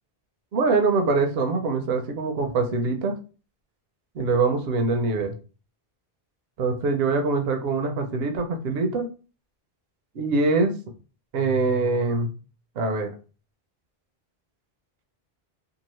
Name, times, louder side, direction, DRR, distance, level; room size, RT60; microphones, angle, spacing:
voice 1, 0.5-3.1 4.2-5.3 6.6-9.1 10.2-10.7 11.3-12.3 12.8-13.1, right 3 dB, 75° right, 5 dB, 0.8 m, -23 dB
2.8 x 2.4 x 3.0 m, 0.35 s
omnidirectional pair, 1.0 m